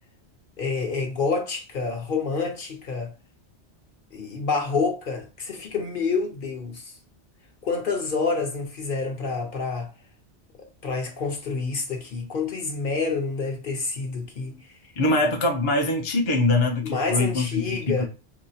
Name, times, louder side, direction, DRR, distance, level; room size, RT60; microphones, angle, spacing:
voice 1, 0.6-3.1 4.1-6.9 7.6-9.9 10.8-14.6 16.8-18.1, left 4 dB, 50° left, 1.0 m, -28 dB
voice 2, 15.0-18.1, left 2 dB, 30° left, 0.6 m, -23 dB
4.6 x 2.0 x 2.8 m
omnidirectional pair, 1.2 m